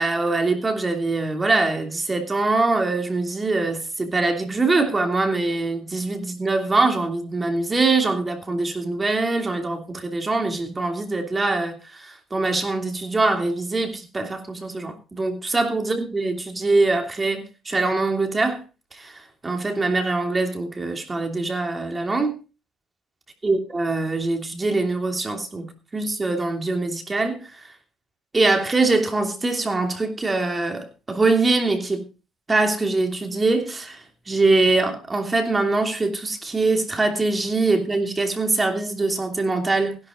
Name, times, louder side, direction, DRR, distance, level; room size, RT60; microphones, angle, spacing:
voice 1, 0.0-18.6 18.9-22.4 23.4-27.6 28.3-32.0 32.5-34.0 34.3-40.0, right 3 dB, 20° right, 2.9 m, -23 dB
16.0 x 11.5 x 3.9 m
cardioid pair, 130°, 0 cm